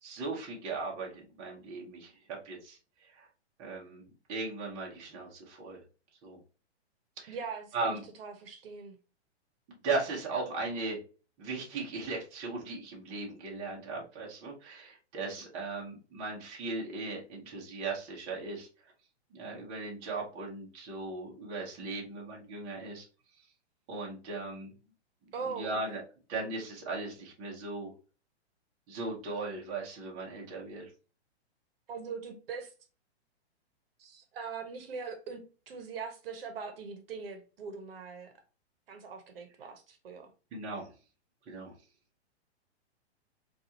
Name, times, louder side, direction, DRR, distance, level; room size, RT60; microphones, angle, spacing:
voice 1, 0.0-2.8 3.1-3.3 3.6-5.8 6.2-6.4 7.2-7.4 7.7-8.0 9.8-11.0 11.4-18.7 19.3-23.1 23.9-24.7 25.6-26.0 26.3-27.9 28.9-30.9 40.5-40.9 41.5-41.7, right 3 dB, 20° right, 0.7 m, -37 dB
voice 2, 7.3-9.0 25.3-25.8 31.9-32.7 34.0-35.4 35.7-38.3 38.9-40.3, right 5 dB, 60° right, 0.9 m, -41 dB
4.0 x 2.4 x 2.7 m
hypercardioid pair, 165°, 34 cm